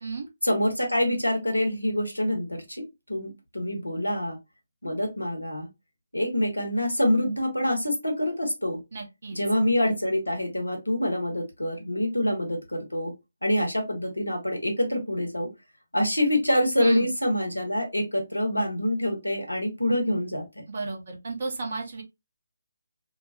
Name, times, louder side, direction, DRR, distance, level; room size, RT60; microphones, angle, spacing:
voice 1, 0.4-4.3 4.8-5.7 6.1-8.8 9.3-13.1 13.4-15.5 15.9-20.6, left 1 dB, 85° left, 1.0 m, -26 dB
voice 2, 8.9-9.4 16.8-17.1 20.7-22.0, right 3 dB, 50° right, 0.8 m, -33 dB
2.6 x 2.2 x 2.6 m
figure-of-eight pair, 145°, 0 cm